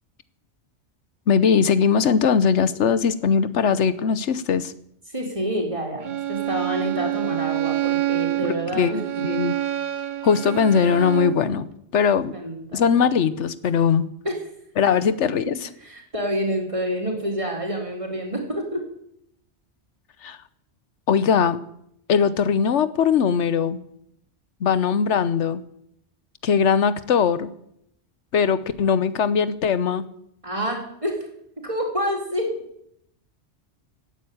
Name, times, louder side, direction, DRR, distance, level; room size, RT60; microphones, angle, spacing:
voice 1, 1.3-4.7 8.4-9.5 10.2-11.7 11.9-12.3 12.7-14.1 14.8-15.7 20.2-20.4 21.1-21.6 22.1-23.8 24.6-25.6 26.4-27.5 28.3-30.0, left 6 dB, 90° left, 14 dB, 1.2 m, -20 dB
voice 2, 5.1-9.2 12.3-12.9 14.2-14.4 15.5-15.6 15.8-18.8 30.4-31.2 31.6-32.5, equal, 30° right, 0 dB, 4.0 m, -28 dB
Bowed string instrument, 6.0-11.5, right 14 dB, 50° right, 0.8 m, -27 dB
17.0 x 9.4 x 8.6 m, 0.73 s
omnidirectional pair, 1.2 m